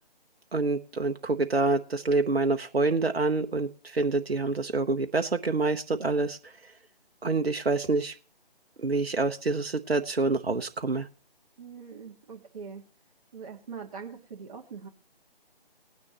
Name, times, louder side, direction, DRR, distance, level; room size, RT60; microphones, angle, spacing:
voice 1, 0.5-6.4 7.2-8.2 8.8-11.1, right 3 dB, 80° right, 6 dB, 1.0 m, -27 dB
voice 2, 11.6-12.8 13.3-14.9, right 6 dB, 35° right, 1 dB, 1.9 m, -42 dB
19.5 x 9.6 x 3.0 m, 0.35 s
figure-of-eight pair, 155°, 30 cm